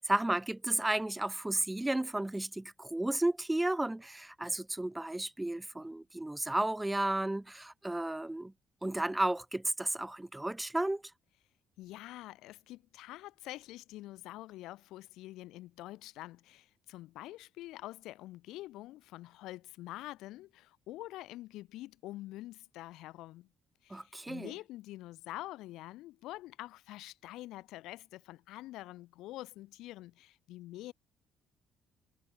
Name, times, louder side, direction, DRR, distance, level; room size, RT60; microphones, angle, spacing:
voice 1, 0.0-8.5 8.8-11.0 23.9-24.5, right 1 dB, 10° right, 0.3 m, -33 dB
voice 2, 11.8-23.5 23.8-30.9, left 16 dB, 70° left, 0.5 m, -46 dB
hypercardioid pair, 50°, 0 cm